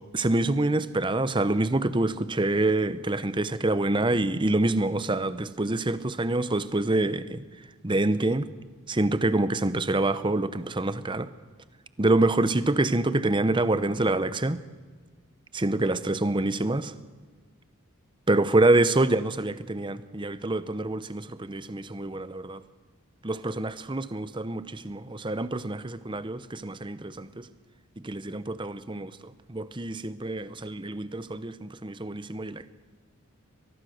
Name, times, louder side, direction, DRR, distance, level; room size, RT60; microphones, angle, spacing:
voice 1, 0.1-7.4 7.8-8.5 8.9-11.3 12.0-14.6 15.5-16.9 18.3-22.6 23.2-27.5 28.0-29.1 29.5-32.7, right 2 dB, 20° right, 13 dB, 0.8 m, -26 dB
23.5 x 19.5 x 6.6 m, 1.4 s
head